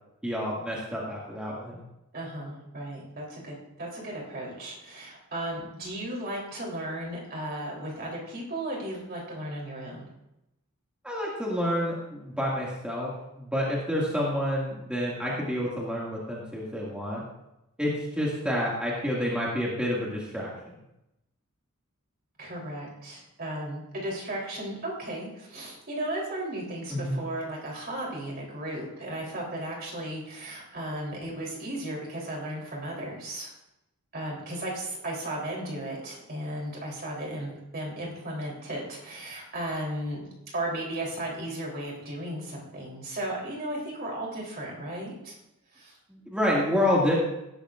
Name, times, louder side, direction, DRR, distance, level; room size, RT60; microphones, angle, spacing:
voice 1, 0.2-1.8 11.0-13.1 13.4-17.2 17.8-20.7 26.9-27.2 46.1-47.2, equal, 5° right, -5 dB, 2.1 m, -28 dB
voice 2, 2.1-10.0 22.4-33.5 34.1-40.3 40.5-45.3 45.7-46.0, right 1 dB, 45° right, -3 dB, 3.4 m, -35 dB
17.0 x 11.5 x 2.5 m, 0.89 s
head